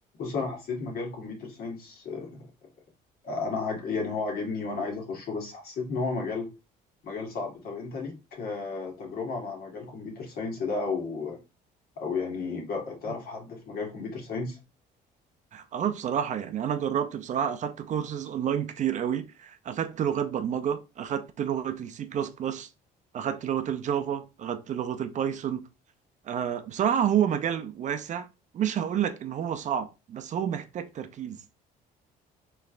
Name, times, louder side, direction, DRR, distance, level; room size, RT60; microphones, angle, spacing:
voice 1, 0.2-2.4 3.2-6.5 7.0-11.4 12.0-14.6, left 4 dB, 65° left, 1.6 m, -33 dB
voice 2, 15.5-22.7 23.1-25.7 26.3-28.3 28.5-31.4, right 9 dB, 45° right, 0.5 m, -29 dB
4.3 x 3.2 x 2.5 m
cardioid pair, 110°, 17 cm